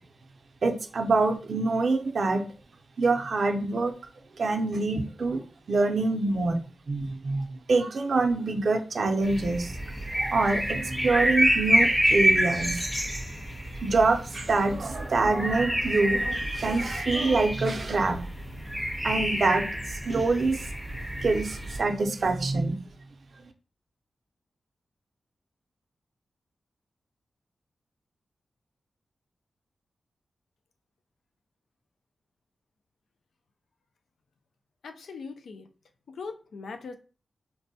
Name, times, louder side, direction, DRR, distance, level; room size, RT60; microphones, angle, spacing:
voice 1, 0.6-2.5 3.0-3.9 4.4-5.4 5.7-6.6 6.9-9.7 10.1-12.8 13.8-18.2 19.0-19.7 20.1-20.6 21.2-22.8, right 3 dB, 55° right, 4 dB, 0.5 m, -25 dB
sound 1, 9.2-21.8, equal, 10° left, 0.5 m, -28 dB
voice 2, 34.8-35.7 36.1-36.9, left 4 dB, 90° left, 7 dB, 0.3 m, -40 dB
4.4 x 2.1 x 2.6 m, 0.38 s
wide cardioid pair, 160°, 0 cm